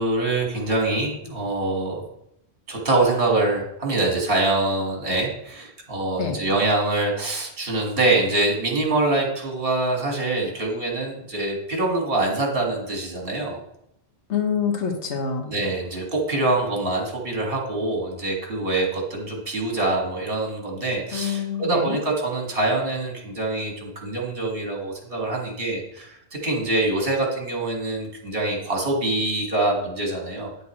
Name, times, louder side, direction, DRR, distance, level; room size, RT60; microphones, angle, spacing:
voice 1, 0.0-2.0 2.7-13.6 15.5-30.6, right 2 dB, 55° right, -1 dB, 2.0 m, -24 dB
voice 2, 14.3-15.5 21.1-22.0, left 7 dB, 85° left, 3 dB, 1.5 m, -26 dB
8.9 x 7.9 x 3.1 m, 0.80 s
omnidirectional pair, 1.1 m